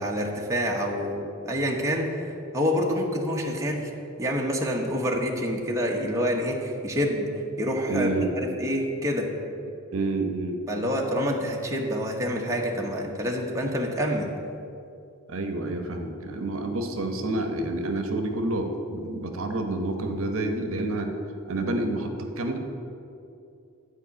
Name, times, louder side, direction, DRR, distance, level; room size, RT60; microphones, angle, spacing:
voice 1, 0.0-2.3 2.5-3.9 4.2-7.3 7.6-9.3 10.7-14.3, equal, 15° right, -1 dB, 1.0 m, -27 dB
voice 2, 7.9-8.3 9.9-10.6 15.3-21.1 21.5-22.6, right 2 dB, 60° right, 5 dB, 1.0 m, -28 dB
11.5 x 5.0 x 8.3 m, 2.6 s
head